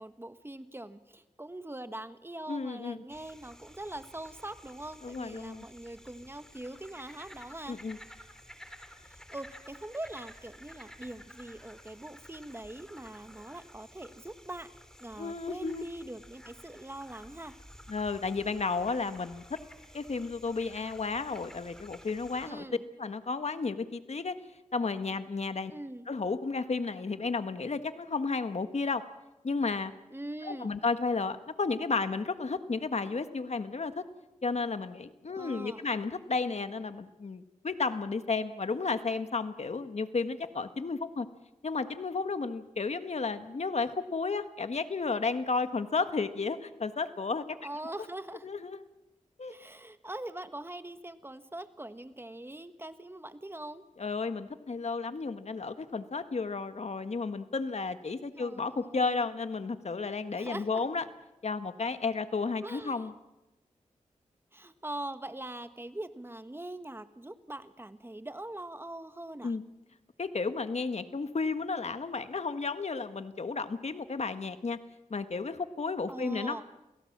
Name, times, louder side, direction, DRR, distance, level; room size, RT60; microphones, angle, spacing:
voice 1, 0.0-7.8 9.1-14.7 15.0-17.5 22.4-22.9 25.7-26.1 30.1-30.8 35.3-35.8 47.6-48.5 49.5-53.8 58.3-59.3 60.3-60.8 62.6-63.1 64.5-69.5 76.1-76.6, right 1 dB, 15° right, 10 dB, 1.5 m, -42 dB
voice 2, 2.5-3.0 5.0-5.6 7.7-8.0 15.2-15.9 17.9-19.6 19.9-22.6 23.0-24.4 24.7-25.7 26.1-29.0 29.4-29.9 30.5-34.0 34.4-41.3 41.6-47.4 48.4-48.8 49.4-49.5 54.0-61.0 61.4-63.1 69.4-69.6 70.2-74.8 75.1-76.6, left 4 dB, 55° left, 10 dB, 1.5 m, -33 dB
sound 1, 3.1-22.5, equal, 5° left, 3.4 m, -53 dB
28.0 x 17.5 x 7.4 m, 1.0 s
cardioid pair, 65°, 14 cm